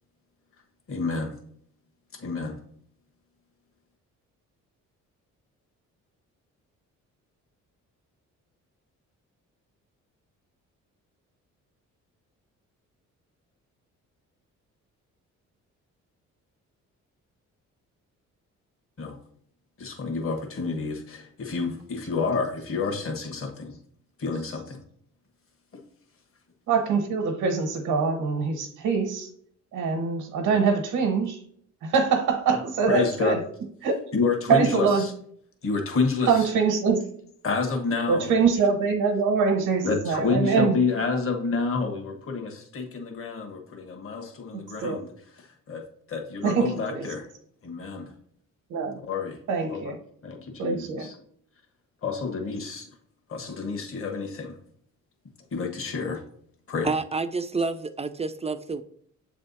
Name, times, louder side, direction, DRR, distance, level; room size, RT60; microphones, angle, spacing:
voice 1, 0.9-1.4 2.1-2.6 19.0-19.2 19.8-23.8 24.2-24.8 30.5-30.6 32.5-32.6 32.9-33.4 34.1-35.1 35.6-36.5 37.4-38.3 39.8-45.1 45.4-45.8 46.1-47.3 47.6-48.1 49.0-49.4 49.7-49.8 50.2-51.2 52.0-52.9 53.3-54.5 55.5-56.2 56.7-56.9, left 4 dB, 45° left, 3 dB, 1.4 m, -29 dB
voice 2, 26.7-29.3 29.7-31.4 31.8-33.4 33.8-34.0 34.5-35.1 36.2-37.0 38.1-40.8 44.8-45.0 46.4-47.0 48.7-49.0 49.5-50.0 50.6-51.1, right 5 dB, 85° right, 3 dB, 1.0 m, -24 dB
voice 3, 56.8-58.8, right 4 dB, 20° right, 10 dB, 0.4 m, -29 dB
7.4 x 3.4 x 4.1 m, 0.63 s
cardioid pair, 90°, 30 cm